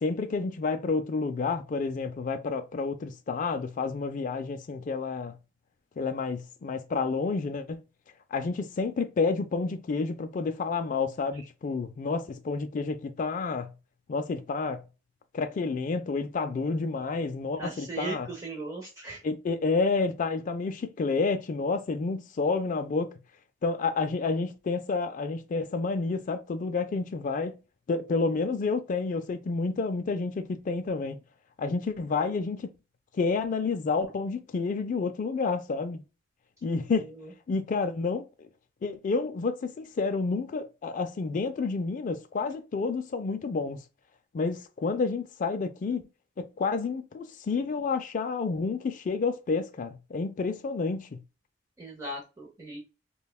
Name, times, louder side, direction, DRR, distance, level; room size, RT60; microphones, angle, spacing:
voice 1, 0.0-5.3 6.0-7.8 8.3-13.7 14.1-14.8 15.3-18.3 19.2-23.1 23.6-27.6 27.9-31.2 31.6-32.7 33.1-36.0 36.6-37.1 37.5-38.5 38.8-43.8 44.3-46.0 46.4-51.2, left 4 dB, 45° left, 0.4 m, -29 dB
voice 2, 17.6-19.2 36.9-37.3 51.8-52.8, right 2 dB, 20° right, 0.9 m, -38 dB
5.3 x 2.2 x 2.3 m
head